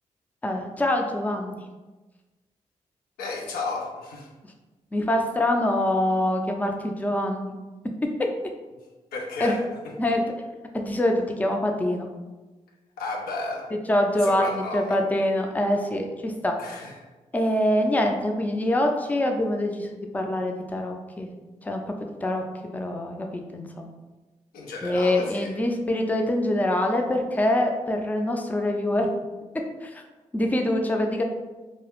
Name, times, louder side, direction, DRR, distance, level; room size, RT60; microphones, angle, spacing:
voice 1, 0.4-1.6 4.9-7.5 8.2-8.3 9.4-9.5 10.0-10.2 10.7-12.1 13.9-16.6 17.3-19.9 20.1-21.3 21.6-21.8 22.2-22.4 22.7-23.9 24.8-29.1 29.8-29.9 30.3-31.2, left 1 dB, 10° left, 3 dB, 0.4 m, -24 dB
voice 2, 3.2-4.3 9.1-9.9 13.0-13.7 14.1-15.0 16.6-17.0 24.5-25.5, left 3 dB, 90° left, -1 dB, 0.4 m, -33 dB
2.2 x 2.0 x 2.9 m, 1.2 s
supercardioid pair, 40°, 15 cm